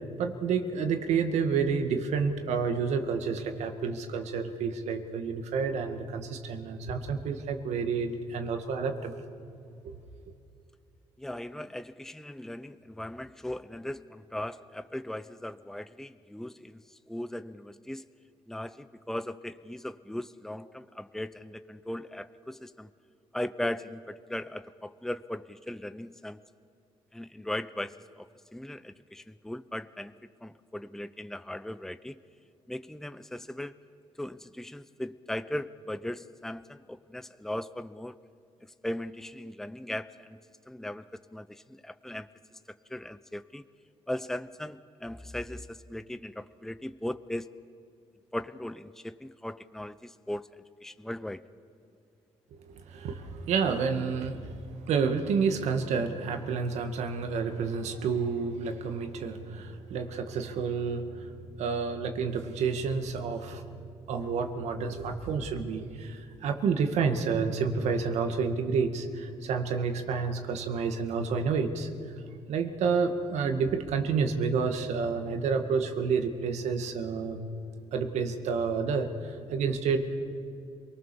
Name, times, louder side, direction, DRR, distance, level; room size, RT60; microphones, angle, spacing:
voice 1, 0.2-9.1 9.8-9.9 52.6-61.3 61.6-63.6 64.1-71.9 72.5-77.4 77.9-80.2, right 5 dB, 85° right, 6 dB, 2.1 m, -29 dB
voice 2, 11.2-16.8 17.1-18.0 18.5-22.9 23.3-26.4 27.1-30.1 30.4-32.2 32.7-33.7 34.2-38.1 38.8-40.4 40.7-41.0 41.3-42.3 42.9-43.6 44.1-47.5 48.3-50.5 50.8-51.4, left 1 dB, 5° left, 13 dB, 0.7 m, -38 dB
27.5 x 19.5 x 7.1 m, 2.6 s
cardioid pair, 80°, 11 cm